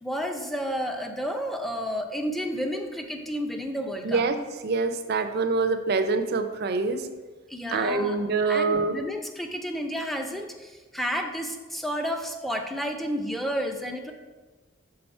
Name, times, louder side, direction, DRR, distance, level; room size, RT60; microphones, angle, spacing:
voice 1, 0.0-4.2 7.5-8.2 8.4-14.1, equal, ahead, 3 dB, 0.5 m, -31 dB
voice 2, 4.0-7.1 7.7-8.9, right 4 dB, 55° right, 8 dB, 0.5 m, -25 dB
5.7 x 3.8 x 5.4 m, 1.3 s
head